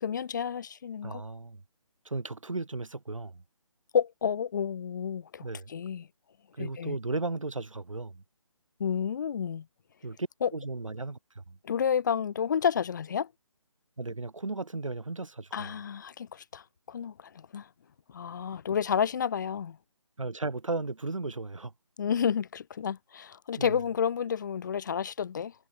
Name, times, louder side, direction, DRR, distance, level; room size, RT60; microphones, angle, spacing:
voice 1, 0.0-1.2 3.9-6.1 6.6-7.0 8.8-9.7 10.4-10.5 11.6-13.3 15.5-17.7 18.1-19.8 22.0-25.5, left 7 dB, 35° left, 2.4 m, -30 dB
voice 2, 1.0-1.6 2.0-3.4 5.4-5.7 6.5-8.2 10.0-11.6 14.0-15.7 20.2-21.7 23.6-23.8, right 3 dB, 70° right, 2.5 m, -35 dB
figure-of-eight pair, 150°, 17 cm